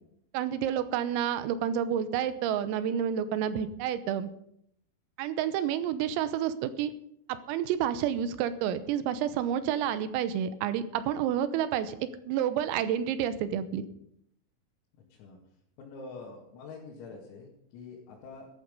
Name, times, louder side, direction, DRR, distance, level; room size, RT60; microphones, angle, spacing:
voice 1, 0.3-4.3 5.2-6.9 7.3-13.9, right 9 dB, 85° right, 11 dB, 3.7 m, -29 dB
voice 2, 15.8-18.5, left 4 dB, 85° left, -3 dB, 5.0 m, -45 dB
14.5 x 12.0 x 5.4 m, 0.71 s
omnidirectional pair, 6.0 m